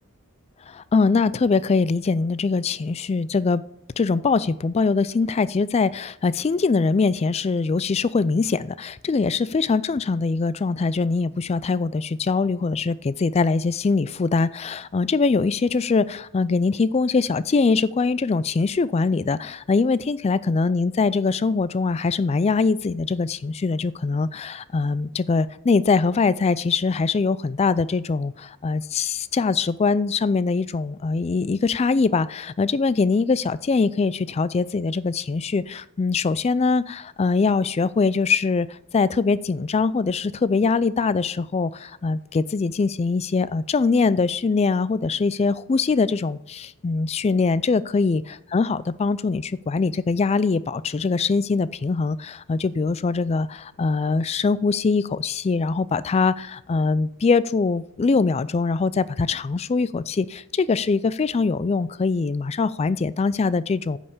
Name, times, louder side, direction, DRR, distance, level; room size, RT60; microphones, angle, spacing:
voice 1, 0.7-3.6 4.0-48.2 48.5-64.0, left 4 dB, 30° left, 0.3 m, -22 dB
10.0 x 5.5 x 6.7 m
head